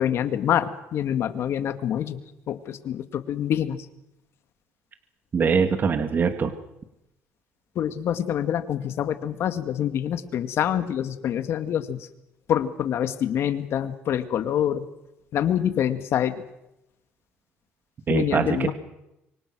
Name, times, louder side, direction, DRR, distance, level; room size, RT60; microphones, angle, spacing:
voice 1, 0.0-2.2 2.5-3.9 7.8-12.1 12.5-14.9 15.3-16.4 18.1-18.7, left 10 dB, 65° left, 9 dB, 2.2 m, -26 dB
voice 2, 5.3-6.5 18.1-18.7, right 6 dB, 40° right, 7 dB, 2.5 m, -23 dB
26.5 x 24.0 x 6.3 m, 0.88 s
cardioid pair, 90°, 5 cm